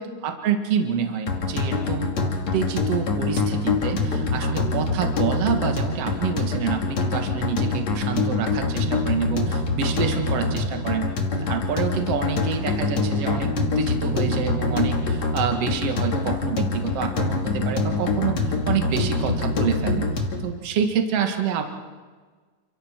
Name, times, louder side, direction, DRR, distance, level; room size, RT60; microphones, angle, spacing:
voice 1, 0.2-11.1 11.4-21.6, right 7 dB, 70° right, 4 dB, 1.4 m, -27 dB
sound 1, 1.3-20.5, left 3 dB, 45° left, 2.7 m, -25 dB
30.0 x 27.0 x 4.6 m, 1.5 s
omnidirectional pair, 5.9 m